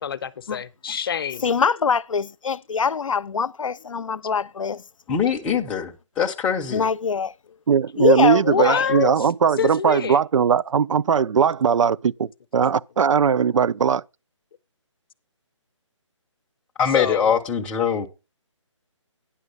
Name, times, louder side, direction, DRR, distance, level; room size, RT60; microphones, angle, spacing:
voice 1, 0.0-1.5 8.4-9.3 9.6-10.2 16.9-17.3, left 8 dB, 45° left, 0.6 m, -26 dB
voice 2, 1.4-4.8 6.7-7.3 8.0-8.9, left 5 dB, 90° left, 0.5 m, -23 dB
voice 3, 5.1-6.8 16.8-18.1, left 7 dB, 5° left, 0.5 m, -23 dB
voice 4, 7.7-14.0, right 7 dB, 75° right, 0.4 m, -19 dB
9.7 x 6.2 x 5.2 m
hypercardioid pair, 155°, 16 cm